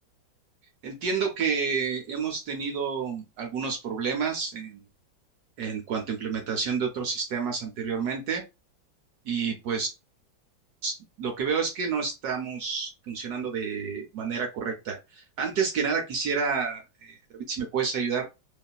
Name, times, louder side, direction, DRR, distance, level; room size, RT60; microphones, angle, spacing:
voice 1, 0.8-4.8 5.6-8.4 9.3-9.9 10.8-18.3, right 5 dB, 70° right, 2 dB, 1.0 m, -29 dB
2.9 x 2.4 x 2.3 m, 0.25 s
omnidirectional pair, 2.1 m